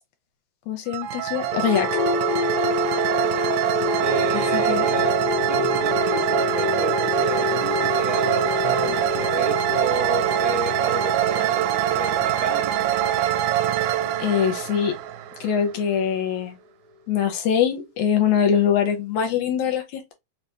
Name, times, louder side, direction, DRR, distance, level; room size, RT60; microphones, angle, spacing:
voice 1, 0.7-1.9 4.3-4.9 14.2-14.9 15.4-16.6 17.1-20.1, left 8 dB, 80° left, 2.0 m, -23 dB
sound 1, 0.9-15.7, right 12 dB, 85° right, 2.1 m, -24 dB
sound 2, 1.4-15.3, left 5 dB, 60° left, 1.7 m, -28 dB
voice 2, 4.0-12.7, right 2 dB, 60° right, 1.4 m, -32 dB
4.7 x 3.2 x 2.8 m
omnidirectional pair, 3.6 m